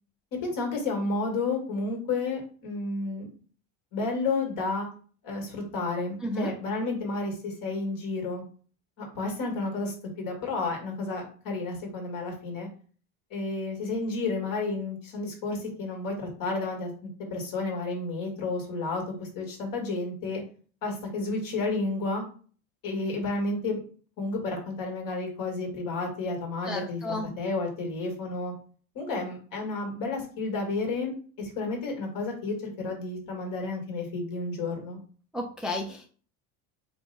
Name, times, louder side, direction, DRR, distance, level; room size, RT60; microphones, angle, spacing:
voice 1, 0.4-3.3 3.9-4.9 5.2-8.4 9.0-12.7 13.3-16.9 17.2-20.4 20.8-22.2 22.8-23.8 24.2-28.5 29.0-35.0, left 3 dB, 60° left, 1 dB, 1.9 m, -31 dB
voice 2, 6.2-6.5 26.7-27.3 35.3-36.0, left 1 dB, ahead, 1 dB, 0.4 m, -32 dB
4.5 x 2.2 x 4.0 m, 0.42 s
supercardioid pair, 115°, 38 cm